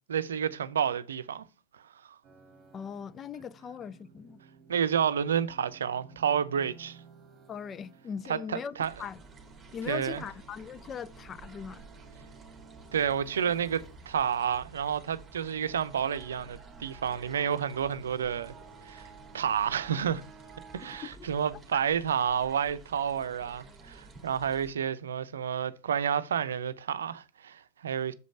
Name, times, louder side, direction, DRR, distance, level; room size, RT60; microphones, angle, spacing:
voice 1, 0.1-1.5 2.0-2.1 4.7-7.0 8.3-8.9 9.9-10.2 12.9-18.5 18.9-19.1 19.3-20.2 20.7-28.1, right 8 dB, 75° right, 0.6 m, -30 dB
sound 1, 2.2-21.1, right 5 dB, 25° right, 1.7 m, -55 dB
voice 2, 2.7-4.4 7.5-9.2 9.7-11.8 20.8-21.3 21.7-21.8, left 7 dB, 25° left, 0.4 m, -40 dB
sound 2, 8.8-24.7, right 3 dB, 10° right, 2.2 m, -52 dB
6.6 x 5.1 x 5.6 m
figure-of-eight pair, 95°, 0 cm